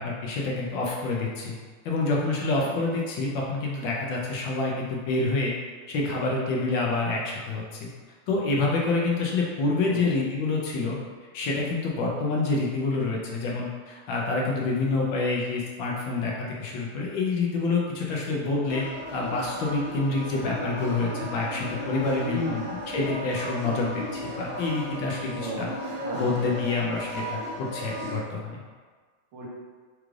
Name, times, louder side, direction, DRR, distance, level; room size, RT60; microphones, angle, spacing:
voice 1, 0.0-1.5 1.8-5.6 5.9-7.9 8.3-11.0 11.3-18.8 19.1-25.7 26.1-28.6, left 3 dB, 75° left, -2 dB, 1.3 m, -27 dB
sound 1, 18.7-28.2, equal, 55° left, 1.3 m, -35 dB
voice 2, 22.2-22.6 25.2-26.3 29.3-29.5, right 1 dB, 85° right, -3 dB, 1.7 m, -35 dB
4.8 x 2.4 x 3.1 m, 1.5 s
omnidirectional pair, 2.3 m